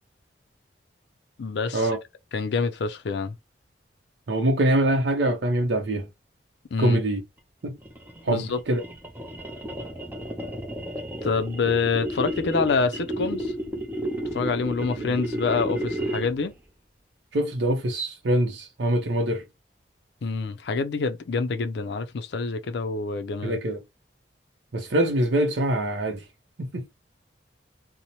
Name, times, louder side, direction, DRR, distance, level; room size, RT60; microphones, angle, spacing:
voice 1, 1.4-1.9 2.3-3.4 6.7-7.0 8.3-8.6 11.2-13.5 14.3-16.5 20.2-23.6, left 4 dB, 70° left, 0.4 m, -26 dB
voice 2, 4.3-6.1 6.8-7.2 7.6-7.8 8.2-8.8 14.9-15.2 17.3-19.4 23.4-23.8 24.7-26.2 26.6-26.8, right 1 dB, 75° right, 0.6 m, -24 dB
sound 1, 7.8-16.5, equal, 10° right, 0.5 m, -32 dB
2.7 x 2.0 x 2.9 m
head